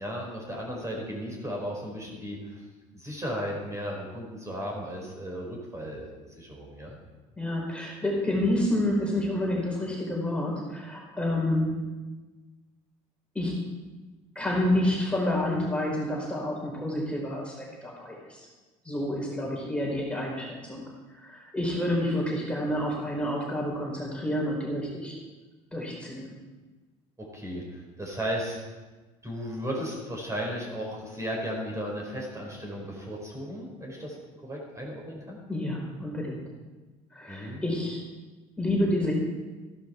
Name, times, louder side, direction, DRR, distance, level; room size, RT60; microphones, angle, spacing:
voice 1, 0.0-2.6 2.9-7.0 27.2-28.6 29.2-34.2 34.4-35.4 37.3-37.6, equal, 15° right, -1 dB, 4.9 m, -35 dB
voice 2, 7.4-11.8 13.3-13.7 14.3-18.5 18.8-20.8 21.1-25.2 25.7-26.3 35.5-36.4 37.1-38.0 38.6-39.1, left 1 dB, 5° left, -3 dB, 4.5 m, -29 dB
14.5 x 11.5 x 4.5 m, 1.2 s
hypercardioid pair, 65°, 17 cm